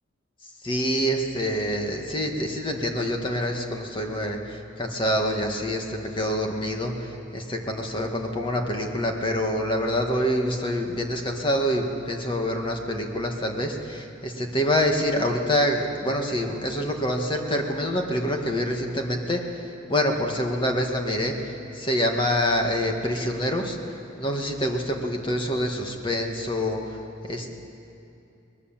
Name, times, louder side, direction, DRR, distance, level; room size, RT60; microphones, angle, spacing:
voice 1, 0.6-19.4 19.9-23.8 24.2-27.0 27.3-27.6, equal, 25° left, 2 dB, 2.0 m, -26 dB
22.5 x 20.0 x 7.5 m, 2.7 s
head